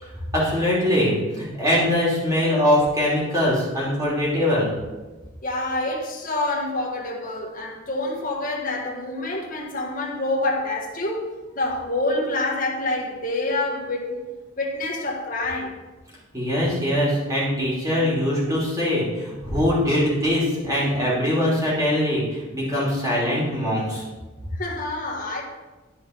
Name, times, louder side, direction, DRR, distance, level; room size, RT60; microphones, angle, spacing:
voice 1, 0.3-4.7 16.3-24.0, left 1 dB, 20° right, 3.0 m, -22 dB
voice 2, 5.4-14.2 14.6-15.8 24.5-25.4, left 2 dB, 40° left, 1.6 m, -27 dB
11.5 x 5.1 x 4.5 m
head